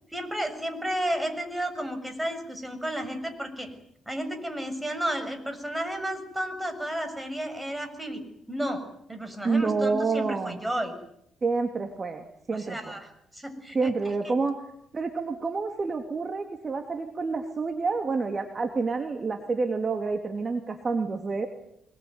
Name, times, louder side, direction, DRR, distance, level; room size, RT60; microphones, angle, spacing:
voice 1, 0.1-3.7 4.1-8.2 8.5-8.8 9.1-10.9 12.5-13.9 14.2-14.3, right 1 dB, 10° right, 7 dB, 7.0 m, -32 dB
voice 2, 9.4-10.6 11.4-12.8 13.7-14.5 14.9-21.5, right 4 dB, 35° right, 6 dB, 2.8 m, -28 dB
25.5 x 22.0 x 9.6 m, 0.75 s
cardioid pair, 90°, 0 cm